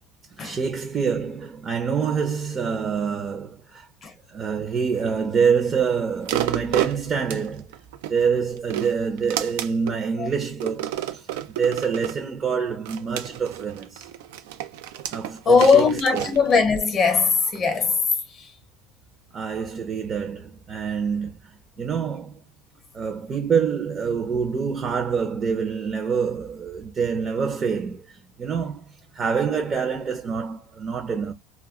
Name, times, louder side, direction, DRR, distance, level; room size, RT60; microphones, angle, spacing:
voice 1, 0.4-3.9 4.3-7.7 8.1-14.1 15.1-16.3 19.3-22.4 22.9-31.3, right 6 dB, 30° right, 0.6 m, -26 dB
sound 1, 6.3-8.1 8.6-10.0 10.6-12.2 12.9-17.0 17.6-17.7, right 12 dB, 85° right, 0.5 m, -30 dB
voice 2, 15.5-18.0, left 5 dB, 30° left, 0.7 m, -19 dB
2.2 x 2.2 x 3.6 m
cardioid pair, 135°, 0 cm